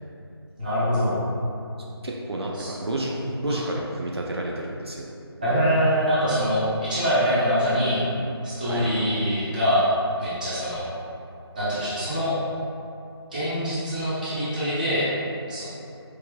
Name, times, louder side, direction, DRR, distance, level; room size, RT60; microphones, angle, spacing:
voice 1, 0.6-1.2 2.6-2.7 3.0-3.6 5.4-8.0 8.4-9.9 10.2-10.8 11.5-12.3 13.3-15.1 15.5-15.6, equal, 20° right, -12 dB, 0.8 m, -24 dB
voice 2, 2.0-3.1 3.4-5.1 8.6-8.9, right 1 dB, 70° right, -2 dB, 0.5 m, -30 dB
4.6 x 2.5 x 2.2 m, 2.6 s
figure-of-eight pair, 165°, 14 cm